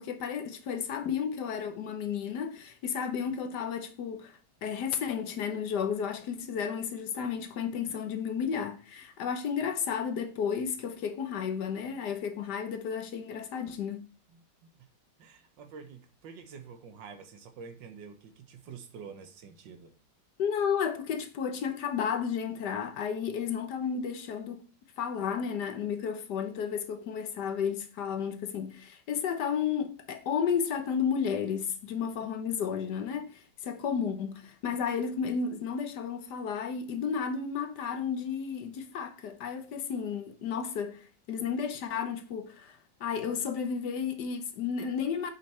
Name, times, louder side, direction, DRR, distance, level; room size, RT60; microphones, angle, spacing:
voice 1, 0.0-14.0 20.4-24.6 25.0-45.3, left 7 dB, 70° left, 1.4 m, -32 dB
voice 2, 15.2-19.9, right 6 dB, 85° right, 1.7 m, -47 dB
7.4 x 4.0 x 4.3 m
omnidirectional pair, 1.9 m